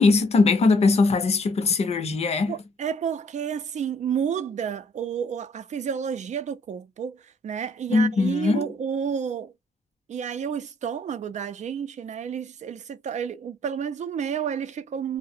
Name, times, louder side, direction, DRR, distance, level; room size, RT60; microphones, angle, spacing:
voice 1, 0.0-2.5 7.9-8.7, left 4 dB, 45° left, 0.6 m, -20 dB
voice 2, 2.5-9.5 10.1-15.2, right 7 dB, 50° right, 0.4 m, -30 dB
2.3 x 2.0 x 2.6 m
wide cardioid pair, 120°, 15 cm